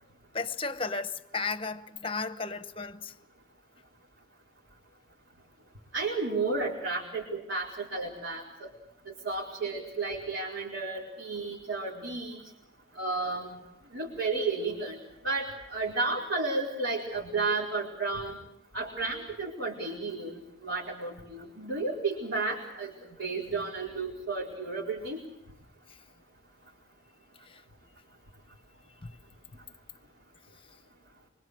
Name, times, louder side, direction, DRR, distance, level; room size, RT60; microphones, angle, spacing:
voice 1, 0.3-3.1 27.5-27.6 29.0-29.2, left 4 dB, 25° left, 0.9 m, -34 dB
voice 2, 5.9-8.7 9.1-12.4 13.0-13.5 13.9-15.0 15.2-18.4 18.7-22.9 23.2-25.2, right 3 dB, 65° right, 4.6 m, -32 dB
25.5 x 24.0 x 6.5 m
head